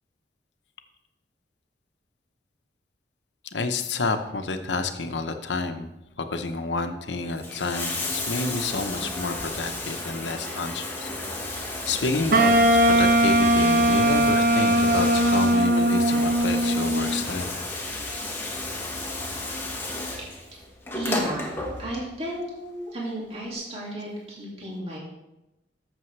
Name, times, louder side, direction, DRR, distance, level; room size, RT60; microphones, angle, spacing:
voice 1, 3.5-5.9 6.2-11.1 11.5-11.6 11.9-17.5, left 3 dB, 90° left, 7 dB, 0.9 m, -29 dB
Bathtub (filling or washing), 7.2-22.2 23.3-23.4, left 2 dB, 15° left, 1.3 m, -33 dB
Wind instrument woodwind instrument, 12.3-17.3, right 1 dB, 55° right, 0.8 m, -20 dB
voice 2, 20.3-20.6 20.9-21.5 21.8-25.0, right 1 dB, 35° right, -4 dB, 2.3 m, -34 dB
13.5 x 6.8 x 3.3 m, 0.93 s
head